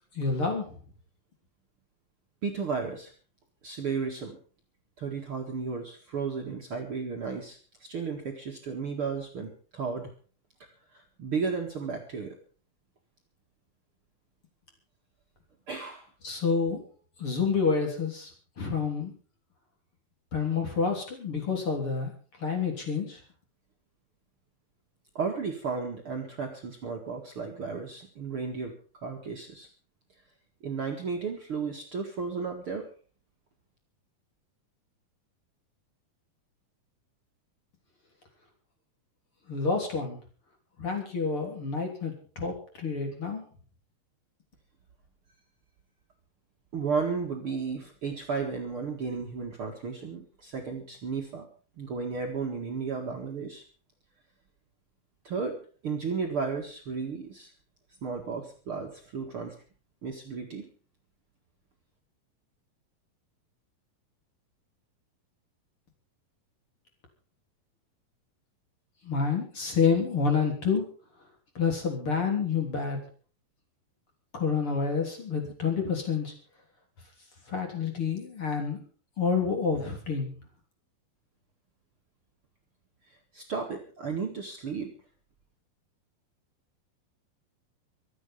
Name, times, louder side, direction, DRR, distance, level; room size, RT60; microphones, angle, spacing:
voice 1, 0.1-0.7 16.2-16.8 17.2-18.3 18.6-19.1 20.3-22.1 22.4-23.2 39.5-40.2 40.8-43.5 69.0-70.9 71.6-73.0 74.3-76.3 77.5-78.8 79.2-80.3, left 5 dB, 35° left, 3 dB, 4.0 m, -28 dB
voice 2, 2.4-3.1 3.6-4.4 5.0-10.1 10.9-12.4 15.7-16.1 25.1-28.7 29.0-29.7 30.6-32.9 46.7-51.5 51.8-53.6 55.2-57.5 58.0-59.6 60.0-60.7 83.3-84.9, right 5 dB, 45° right, 1 dB, 2.3 m, -34 dB
25.0 x 8.4 x 5.5 m, 0.41 s
omnidirectional pair, 4.2 m